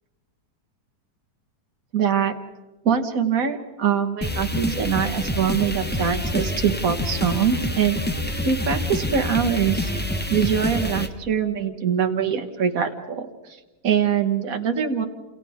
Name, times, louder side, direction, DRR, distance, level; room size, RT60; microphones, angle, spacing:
voice 1, 1.9-2.3 2.8-8.0 8.4-9.9 10.3-13.3 13.8-15.0, right 7 dB, 60° right, 5 dB, 1.8 m, -23 dB
sound 1, 4.2-11.1, left 1 dB, 10° left, 0.8 m, -27 dB
30.0 x 27.5 x 3.6 m, 1.1 s
omnidirectional pair, 1.7 m